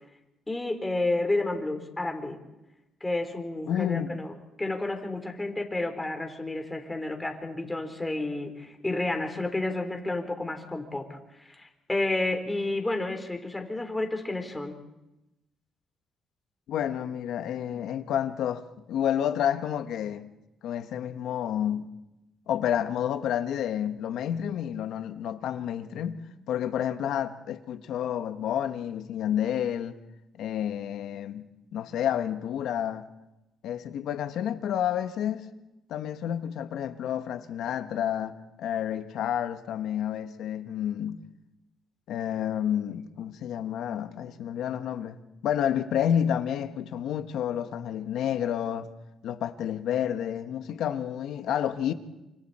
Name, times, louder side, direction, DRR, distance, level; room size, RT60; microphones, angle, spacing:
voice 1, 0.5-2.4 3.0-14.8, left 2 dB, 15° left, 4.0 m, -31 dB
voice 2, 3.7-4.2 16.7-20.3 20.6-21.9 22.5-26.2 26.5-30.0 30.4-31.4 31.7-33.1 33.6-35.4 35.9-41.2 42.1-45.2 45.4-48.9 49.2-51.9, left 10 dB, 80° left, 1.2 m, -30 dB
28.0 x 25.5 x 4.3 m
cardioid pair, 90°, 0 cm